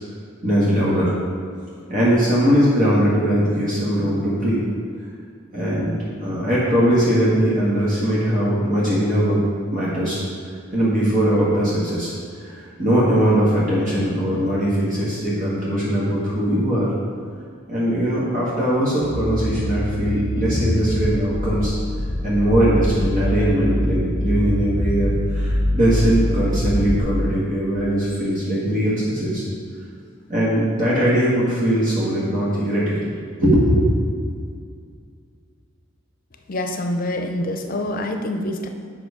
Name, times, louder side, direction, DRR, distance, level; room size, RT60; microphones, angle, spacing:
voice 1, 0.4-1.1 1.9-4.7 5.5-5.9 6.2-9.4 9.7-10.2 10.7-12.1 12.4-16.9 17.7-21.7 22.2-29.4 30.3-33.0 33.4-33.9, equal, 45° right, -8 dB, 1.8 m, -20 dB
sound 1, 19.0-27.0, left 1 dB, 65° right, 1.9 m, -24 dB
voice 2, 36.5-38.7, left 1 dB, 45° left, 5 dB, 0.7 m, -26 dB
7.9 x 5.9 x 5.0 m, 2.2 s
head